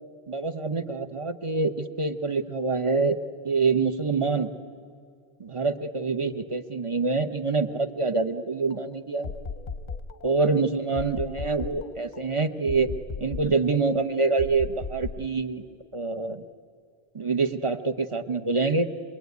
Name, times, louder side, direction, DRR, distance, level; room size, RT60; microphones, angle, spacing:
voice 1, 0.3-3.2 3.4-4.5 5.4-9.3 10.2-15.7 15.9-16.4 17.1-18.9, right 4 dB, 30° right, 7 dB, 0.8 m, -26 dB
sound 1, 8.6-10.5 11.0-13.8 14.4-15.3, left 4 dB, 40° left, 0.8 m, -37 dB
25.5 x 21.5 x 9.4 m, 2.3 s
omnidirectional pair, 1.3 m